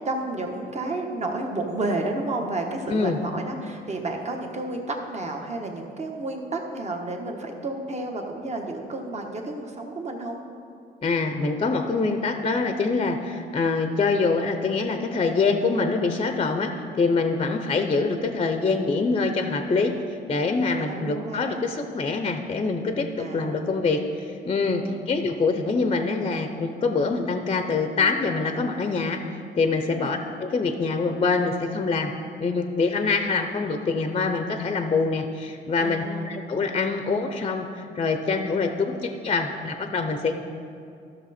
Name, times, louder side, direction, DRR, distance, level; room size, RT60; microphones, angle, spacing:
voice 1, 0.0-10.4 20.8-21.6 23.2-23.8 24.8-24.9 29.9-30.2 35.8-36.3, right 2 dB, 35° right, 2 dB, 1.3 m, -31 dB
voice 2, 2.9-3.2 11.0-19.9 20.3-29.2 29.6-32.1 32.4-40.4, left 4 dB, 30° left, 6 dB, 0.6 m, -25 dB
13.0 x 6.4 x 4.2 m, 2.5 s
cardioid pair, 90°, 20 cm